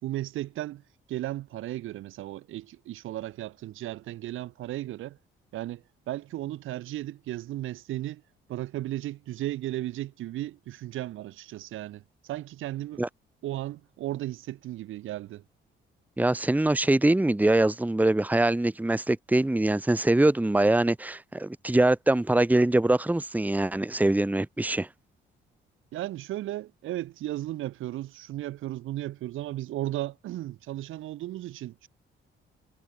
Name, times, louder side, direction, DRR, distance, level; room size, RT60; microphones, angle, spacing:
voice 1, 0.0-5.2 5.5-8.2 8.5-13.0 13.4-15.4 25.9-31.9, right 15 dB, 85° right, 5.2 m, -35 dB
voice 2, 16.2-24.9, right 2 dB, 10° right, 1.3 m, -23 dB
cardioid pair, 90°, 20 cm